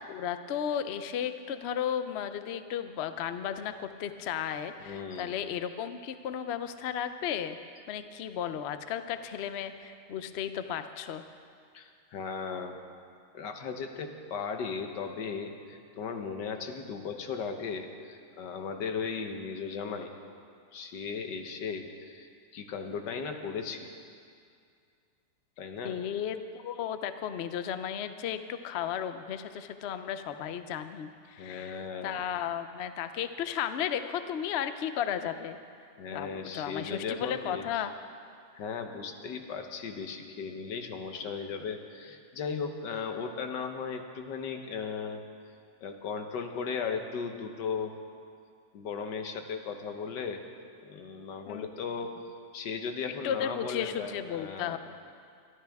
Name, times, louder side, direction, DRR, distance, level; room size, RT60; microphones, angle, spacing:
voice 1, 0.1-7.6 7.9-11.2 25.8-35.6 36.1-37.9 51.5-51.7 53.2-54.8, left 9 dB, 65° left, 10 dB, 0.6 m, -34 dB
voice 2, 4.8-5.3 11.7-12.8 13.3-20.1 20.7-23.9 25.6-26.0 31.4-32.2 36.0-37.9 38.6-45.2 45.8-48.0 48.7-50.4 50.8-52.1 52.5-54.8, left 5 dB, 85° left, 5 dB, 1.7 m, -37 dB
22.5 x 13.0 x 3.5 m, 2.3 s
omnidirectional pair, 1.8 m